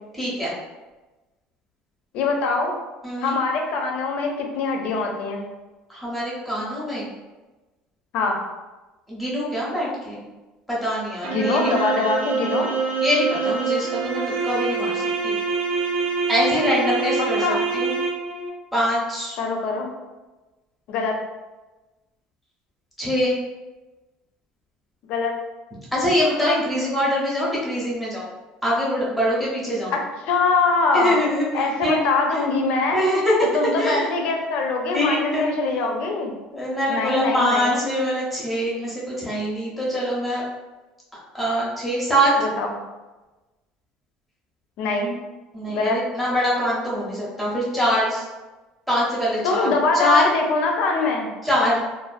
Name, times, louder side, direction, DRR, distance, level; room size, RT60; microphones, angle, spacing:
voice 1, 0.1-0.5 3.0-3.4 5.9-7.1 9.1-10.2 10.7-11.7 13.0-15.3 16.3-17.5 17.7-17.9 18.7-19.4 23.0-23.3 25.9-28.3 28.6-29.9 30.9-32.0 32.3-32.4 32.9-33.3 33.8-34.1 34.9-35.8 36.5-40.4 41.3-42.3 45.5-48.2 48.9-50.3 51.4-51.8, equal, ahead, -7 dB, 0.6 m, -23 dB
voice 2, 2.1-2.7 3.2-5.4 8.1-8.4 11.2-12.7 17.4-17.6 19.4-19.9 20.9-21.2 25.1-25.3 30.3-31.2 31.5-33.0 33.5-36.3 36.9-37.8 42.4-42.7 44.8-45.1 45.7-46.0 49.4-51.3, left 3 dB, 55° left, 2 dB, 0.4 m, -23 dB
sound 1, 11.2-18.5, right 4 dB, 85° right, 0.4 m, -25 dB
2.4 x 2.1 x 2.4 m, 1.1 s
cardioid pair, 175°, 2 cm